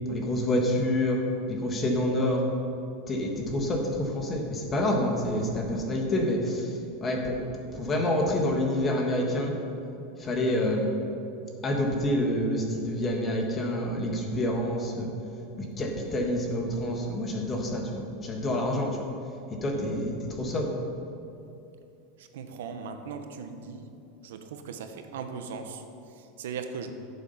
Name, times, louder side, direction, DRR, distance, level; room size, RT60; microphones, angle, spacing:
voice 1, 0.1-1.2 1.5-2.4 3.1-7.4 7.7-9.6 10.2-10.9 11.6-15.1 15.6-19.0 19.5-20.7, left 1 dB, 20° left, 1 dB, 1.5 m, -27 dB
voice 2, 22.2-23.9 24.2-26.9, right 5 dB, 85° right, 7 dB, 1.0 m, -39 dB
13.5 x 7.2 x 5.6 m, 2.7 s
supercardioid pair, 155°, 0 cm